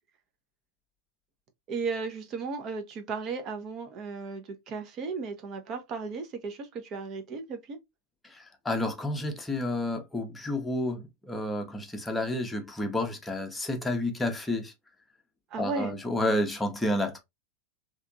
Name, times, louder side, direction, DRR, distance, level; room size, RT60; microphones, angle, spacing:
voice 1, 1.7-7.8 15.5-15.9, right 4 dB, 35° right, 0.8 m, -35 dB
voice 2, 8.3-14.7 15.6-17.2, left 1 dB, 5° left, 0.8 m, -30 dB
3.4 x 2.9 x 2.5 m
figure-of-eight pair, 90°, 0 cm